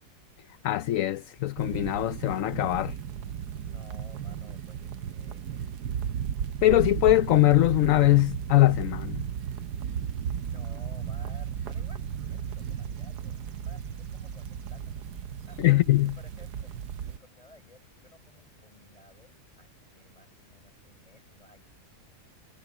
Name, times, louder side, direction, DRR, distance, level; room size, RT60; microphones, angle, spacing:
voice 1, 0.6-3.0 6.6-9.3 15.6-16.1, left 16 dB, 65° left, 0.9 m, -22 dB
sound 1, 1.6-17.2, right 8 dB, 80° right, 1.4 m, -35 dB
voice 2, 3.6-5.6 10.5-15.1 15.5-16.7 17.1-21.7, left 1 dB, 20° left, 7.0 m, -55 dB
sound 2, 8.6-15.2, right 2 dB, 30° right, 3.2 m, -51 dB
omnidirectional pair, 1.7 m